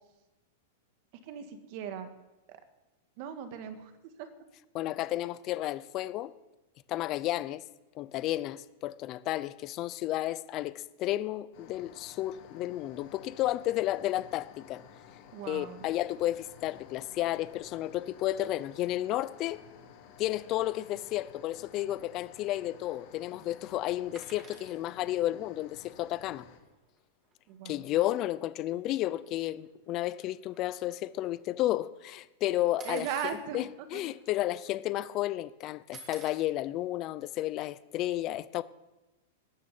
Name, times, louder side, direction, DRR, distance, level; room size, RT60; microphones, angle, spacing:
voice 1, 1.3-2.1 3.2-3.9 4.2-4.3 15.3-15.8 27.5-27.9 32.8-33.6 33.9-34.0, right 8 dB, 45° right, 2.1 m, -38 dB
voice 2, 4.7-6.3 6.9-7.6 7.9-14.8 15.5-19.6 20.2-26.4 27.6-38.6, left 15 dB, 30° left, 0.7 m, -32 dB
sound 1, 11.5-26.6, left 8 dB, 50° left, 4.6 m, -54 dB
sound 2, 24.1-24.8 27.0-27.1 27.3-27.5 27.7-27.9 28.7-28.8 29.2-31.4 32.8-33.4 34.2-34.3 34.5-35.0 35.9-36.5 37.7-37.8, right 4 dB, 20° right, 2.6 m, -51 dB
19.0 x 7.5 x 9.5 m
supercardioid pair, 155°, 0 cm